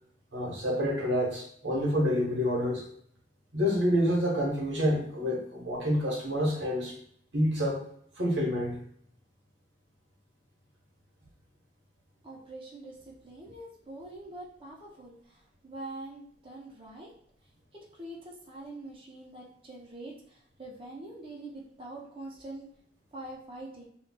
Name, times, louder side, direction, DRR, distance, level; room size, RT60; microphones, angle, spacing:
voice 1, 0.3-2.8 3.5-6.9 7.3-7.9 8.2-8.8, equal, 75° right, -2 dB, 0.9 m, -28 dB
voice 2, 12.2-17.1 17.7-22.7 23.1-23.9, right 2 dB, 30° right, -3 dB, 0.6 m, -44 dB
3.9 x 2.2 x 2.2 m, 0.67 s
head